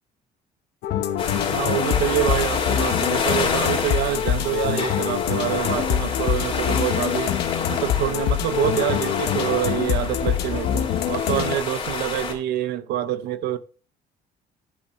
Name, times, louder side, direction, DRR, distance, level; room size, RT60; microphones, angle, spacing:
sound 1, 0.8-11.6, left 10 dB, 75° left, 1.0 m, -25 dB
sound 2, 1.2-12.3, left 5 dB, 35° left, 2.9 m, -29 dB
voice 1, 1.5-7.4 7.7-13.6, right 12 dB, 80° right, 0.6 m, -26 dB
11.5 x 5.3 x 3.1 m
cardioid pair, 110°, 17 cm